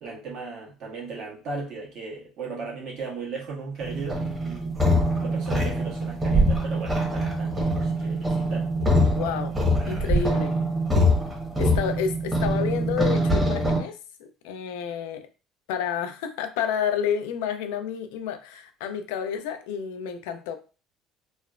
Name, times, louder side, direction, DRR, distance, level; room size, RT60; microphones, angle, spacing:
voice 1, 0.0-4.8 5.2-8.7, right 4 dB, 60° right, 1.2 m, -36 dB
sound 1, 3.8-13.8, equal, 15° right, 1.0 m, -24 dB
voice 2, 9.2-9.6 9.8-10.6 11.6-15.2 15.7-20.6, left 7 dB, 90° left, 0.3 m, -30 dB
3.1 x 2.1 x 2.4 m
supercardioid pair, 95°, 0 cm